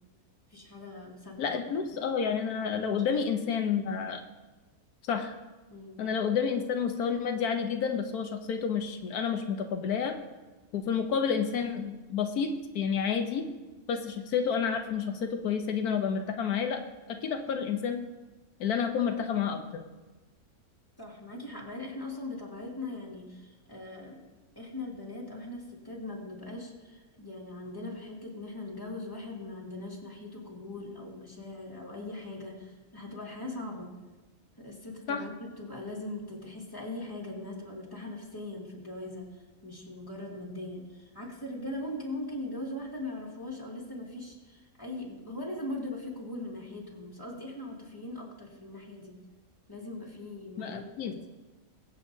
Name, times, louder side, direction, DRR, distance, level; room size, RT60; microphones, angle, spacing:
voice 1, 0.5-1.6 2.9-3.0 3.3-3.7 5.7-6.1 21.0-24.2 24.6-33.9 34.6-39.3 39.6-49.2 49.7-51.3, left 2 dB, 15° left, -2 dB, 2.3 m, -40 dB
voice 2, 1.4-4.2 5.0-5.3 6.0-10.1 10.7-13.5 13.9-16.8 17.1-18.0 18.6-19.8 35.1-35.2 50.6-51.2, left 6 dB, 85° left, 5 dB, 1.3 m, -30 dB
22.0 x 8.1 x 2.7 m, 1.2 s
omnidirectional pair, 1.6 m